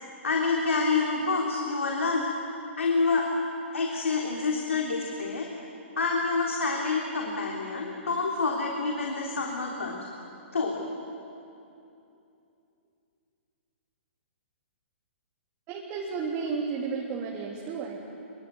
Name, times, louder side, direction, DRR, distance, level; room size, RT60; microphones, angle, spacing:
voice 1, 0.2-2.2 2.8-3.2 3.7-5.5 6.0-10.0 10.5-10.9, left 4 dB, 85° left, -1 dB, 3.4 m, -27 dB
voice 2, 15.7-18.0, right 5 dB, 30° right, -2 dB, 3.5 m, -32 dB
25.0 x 23.0 x 9.6 m, 2.7 s
hypercardioid pair, 130°, 7 cm